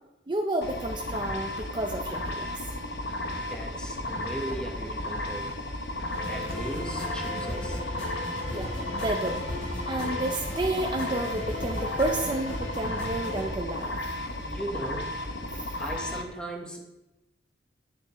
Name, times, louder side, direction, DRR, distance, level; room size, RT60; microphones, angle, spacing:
voice 1, 0.3-2.5 8.5-9.4 9.9-13.9 15.5-15.8, right 1 dB, 25° right, 3 dB, 0.6 m, -31 dB
sound 1, 0.6-16.2, left 1 dB, 65° left, 0.9 m, -34 dB
voice 2, 3.3-5.5 6.3-7.8 14.4-15.2 15.8-16.8, right 1 dB, 5° left, 0 dB, 1.3 m, -37 dB
sound 2, 6.1-13.5, left 1 dB, 85° left, 3.7 m, -36 dB
10.0 x 9.0 x 3.1 m, 0.98 s
head